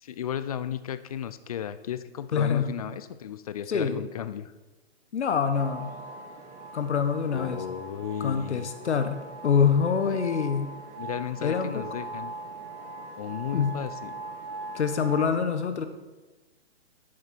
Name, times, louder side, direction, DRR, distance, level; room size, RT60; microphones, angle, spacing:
voice 1, 0.0-4.5 7.3-8.7 10.0-10.2 11.0-12.3 13.2-14.2, left 9 dB, 35° left, 13 dB, 0.4 m, -34 dB
voice 2, 2.3-2.7 3.7-4.0 5.1-5.9 6.7-7.6 8.2-10.7 11.4-11.8 13.5-13.8 14.7-15.8, left 6 dB, 80° left, 9 dB, 1.0 m, -25 dB
sound 1, 5.5-15.3, right 2 dB, 30° right, 1.3 m, -41 dB
10.5 x 6.5 x 4.4 m, 1.2 s
hypercardioid pair, 140°, 34 cm